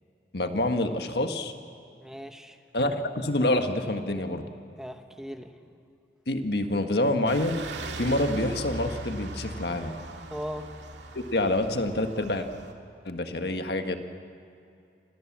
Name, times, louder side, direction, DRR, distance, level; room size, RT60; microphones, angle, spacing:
voice 1, 0.3-1.5 2.7-4.4 6.3-7.6 8.0-9.9 11.3-12.5 13.1-14.0, left 1 dB, 65° left, 6 dB, 1.7 m, -27 dB
voice 2, 2.0-2.6 4.8-5.7 10.3-10.7, equal, 5° right, 6 dB, 1.1 m, -38 dB
sound 1, 7.3-12.7, right 2 dB, 85° right, 2.3 m, -39 dB
29.5 x 25.5 x 7.5 m, 2.6 s
head